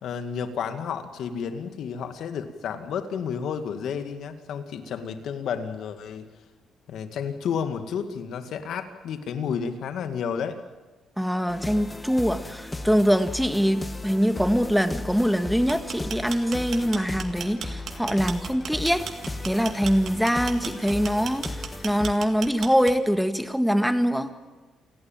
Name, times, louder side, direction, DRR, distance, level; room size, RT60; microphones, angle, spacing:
voice 1, 0.0-6.3 6.9-10.6, left 7 dB, 75° left, 8 dB, 2.1 m, -31 dB
voice 2, 11.2-19.1 19.4-21.5 21.8-24.3, equal, ahead, 8 dB, 1.7 m, -23 dB
sound 1, 11.5-22.1, left 2 dB, 20° left, 1.7 m, -36 dB
sound 2, 15.6-23.2, right 7 dB, 60° right, 2.1 m, -36 dB
28.5 x 18.0 x 7.5 m, 1.3 s
cardioid pair, 90°, 0 cm